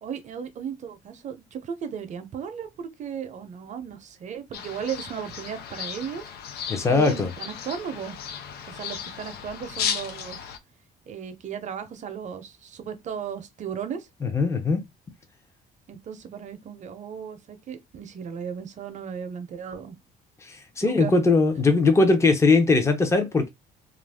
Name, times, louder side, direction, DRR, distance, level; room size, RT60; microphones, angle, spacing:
voice 1, 0.0-6.2 6.9-8.2 8.7-10.5 11.1-14.1 15.9-20.0 20.8-21.2, right 7 dB, 45° right, 0.7 m, -35 dB
sound 1, 4.5-10.6, left 8 dB, 70° left, 0.5 m, -35 dB
voice 2, 6.7-7.3 14.2-14.8 20.4-23.5, left 3 dB, 15° left, 0.7 m, -20 dB
2.5 x 2.2 x 3.4 m
cardioid pair, 110°, 17 cm